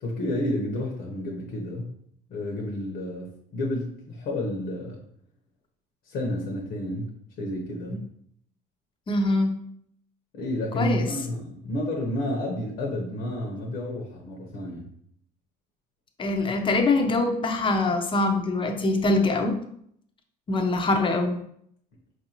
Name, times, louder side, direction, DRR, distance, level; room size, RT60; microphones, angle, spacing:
voice 1, 0.0-1.9 2.3-5.0 6.1-8.1 10.3-14.9, left 1 dB, 75° left, -1 dB, 0.9 m, -30 dB
voice 2, 9.1-9.6 10.8-11.1 16.2-19.6 20.5-21.4, left 2 dB, 30° left, 5 dB, 0.6 m, -23 dB
4.5 x 2.6 x 2.9 m, 0.68 s
cardioid pair, 110°, 17 cm